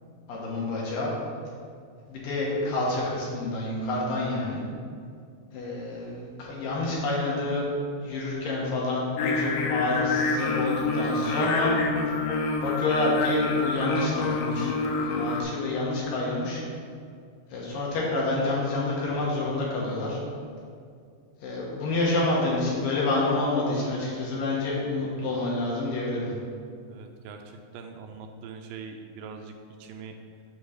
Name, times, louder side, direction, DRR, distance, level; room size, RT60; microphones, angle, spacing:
voice 1, 0.3-1.1 2.1-4.6 5.5-7.6 8.0-11.8 12.6-14.7 15.0-16.6 17.5-20.2 21.4-26.3, left 2 dB, 70° left, -5 dB, 2.9 m, -28 dB
Singing, 9.2-15.4, left 4 dB, 85° left, 2.6 m, -27 dB
voice 2, 26.9-29.5 29.8-30.2, right 5 dB, 85° right, 4 dB, 2.3 m, -42 dB
8.3 x 3.1 x 6.3 m, 2.3 s
omnidirectional pair, 4.3 m